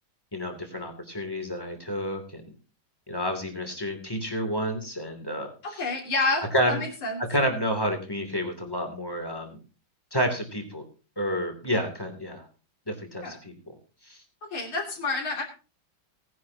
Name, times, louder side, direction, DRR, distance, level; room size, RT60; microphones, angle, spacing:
voice 1, 0.3-2.5 3.1-5.8 6.5-6.8 7.3-9.6 10.1-10.8 11.2-12.5 12.9-13.5 14.0-14.2, equal, 10° left, 5 dB, 2.9 m, -29 dB
voice 2, 5.6-7.2 13.2-13.4 14.5-15.4, left 3 dB, 85° left, 0 dB, 3.8 m, -29 dB
18.5 x 10.5 x 2.8 m, 0.34 s
omnidirectional pair, 2.2 m